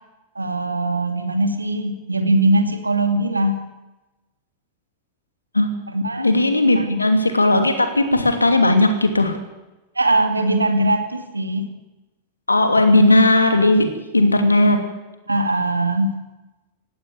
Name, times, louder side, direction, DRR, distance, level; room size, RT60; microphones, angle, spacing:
voice 1, 0.3-3.6 5.9-6.3 6.8-7.0 10.0-11.7 15.3-16.1, right 1 dB, 80° right, 7 dB, 2.5 m, -21 dB
voice 2, 6.2-9.4 12.5-14.8, left 2 dB, 80° left, 6 dB, 2.8 m, -16 dB
19.0 x 16.0 x 9.6 m, 1.0 s
figure-of-eight pair, 90°, 0 cm